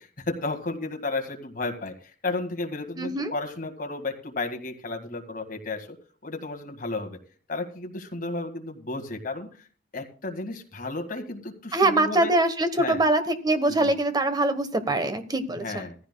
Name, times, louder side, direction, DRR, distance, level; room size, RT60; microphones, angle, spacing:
voice 1, 0.0-5.9 6.2-7.2 7.5-9.5 9.9-12.3 12.8-13.0 13.7-13.9 15.6-16.0, left 3 dB, 50° left, 3 dB, 1.8 m, -33 dB
voice 2, 3.0-3.3 11.7-15.8, right 2 dB, 20° right, 9 dB, 1.1 m, -23 dB
15.5 x 14.5 x 2.2 m, 0.40 s
head